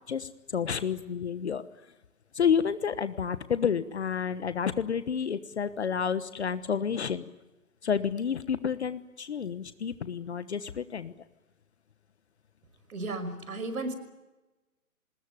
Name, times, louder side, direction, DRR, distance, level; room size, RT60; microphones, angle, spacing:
voice 1, 0.1-1.6 2.3-7.3 7.8-11.1, left 7 dB, 50° left, 12 dB, 1.2 m, -30 dB
voice 2, 12.9-13.9, right 2 dB, 70° right, 11 dB, 5.7 m, -34 dB
25.5 x 20.5 x 9.3 m, 1.1 s
hypercardioid pair, 170°, 44 cm